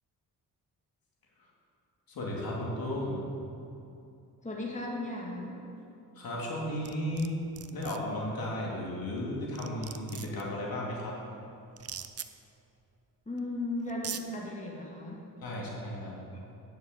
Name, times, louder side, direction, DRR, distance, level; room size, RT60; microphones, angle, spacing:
voice 1, 2.1-3.2 6.1-7.3 7.7-11.1 15.4-16.1, left 1 dB, 60° left, -4 dB, 2.8 m, -34 dB
voice 2, 4.4-5.6 13.3-15.2 16.3-16.4, left 2 dB, 20° left, -3 dB, 2.2 m, -36 dB
sound 1, 6.8-7.3 7.6-8.0 9.2-9.3 9.6-10.4 11.8-12.3 13.4-13.5 13.9-14.2, right 8 dB, 40° right, 0.6 m, -40 dB
9.7 x 6.9 x 7.6 m, 2.7 s
cardioid pair, 70°, 39 cm